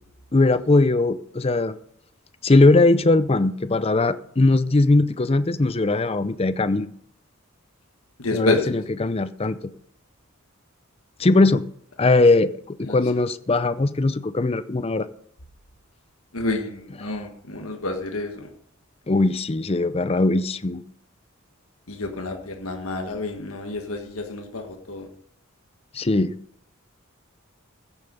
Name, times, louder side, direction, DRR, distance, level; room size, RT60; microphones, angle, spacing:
voice 1, 0.3-1.8 2.4-6.9 8.3-9.6 11.2-11.6 12.0-12.5 12.8-15.1 17.0-17.1 19.1-20.8 25.9-26.4, left 2 dB, 25° left, 0.5 m, -20 dB
voice 2, 8.2-8.7 12.8-13.0 16.3-18.5 21.9-25.1, left 2 dB, 80° left, 1.6 m, -29 dB
15.5 x 7.2 x 5.3 m
head